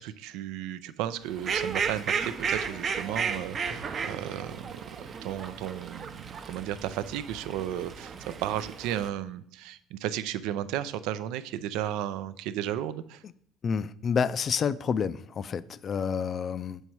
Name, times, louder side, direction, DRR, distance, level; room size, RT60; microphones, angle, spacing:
voice 1, 0.0-13.2, right 11 dB, 75° right, 0.5 m, -34 dB
Fowl, 1.3-9.1, right 6 dB, 40° right, 0.7 m, -34 dB
voice 2, 13.6-16.8, left 6 dB, 40° left, 0.4 m, -29 dB
6.3 x 5.4 x 4.6 m
supercardioid pair, 90°, 0 cm